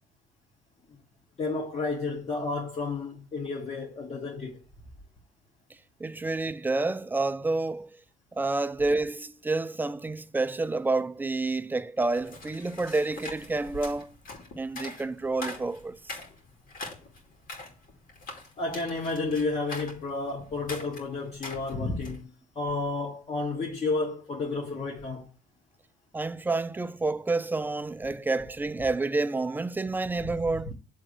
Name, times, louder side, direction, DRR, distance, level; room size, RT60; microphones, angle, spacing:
voice 1, 1.4-4.6 18.6-22.3 22.6-25.2, left 3 dB, 35° left, 1.5 m, -31 dB
voice 2, 6.0-7.9 8.3-14.1 14.5-16.2 26.1-30.7, right 3 dB, 10° right, 0.3 m, -29 dB
sound 1, 12.0-22.2, left 2 dB, 55° left, 2.3 m, -43 dB
8.1 x 3.6 x 4.8 m
cardioid pair, 110°, 17 cm